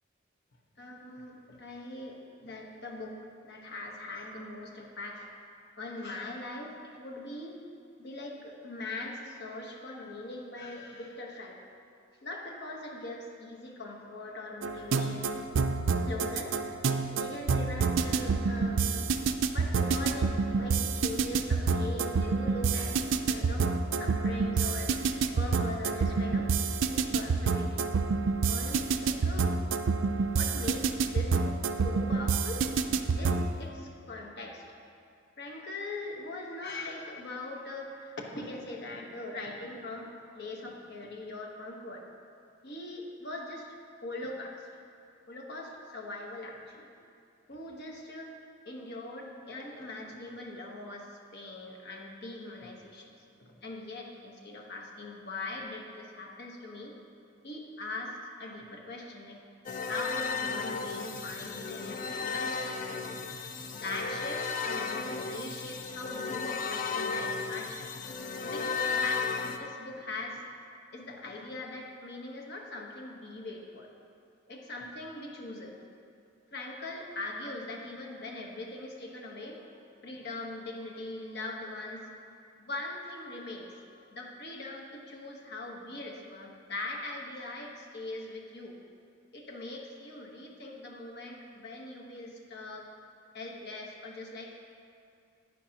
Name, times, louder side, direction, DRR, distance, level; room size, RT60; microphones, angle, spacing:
voice 1, 0.8-3.2 3.4-5.4 5.8-7.6 8.0-11.7 12.2-15.5 16.0-16.6 17.1-19.1 19.4-23.0 23.3-23.7 24.0-25.0 25.4-26.5 26.8-27.8 28.4-29.5 30.3-32.7 33.1-34.8 35.4-42.0 42.6-44.7 45.3-46.9 47.5-48.3 48.6-53.1 53.4-56.9 57.4-59.4 59.9-63.1 63.7-67.8 68.4-70.5 70.9-73.9 74.5-75.8 76.5-79.7 80.0-82.1 82.6-88.8 89.3-92.9 93.3-94.5, left 2 dB, 60° left, 0 dB, 1.2 m, -41 dB
sound 1, 14.6-33.5, right 4 dB, 70° right, 0.4 m, -28 dB
sound 2, 59.7-69.6, left 5 dB, 45° left, 0.5 m, -34 dB
11.0 x 9.2 x 2.9 m, 2.4 s
head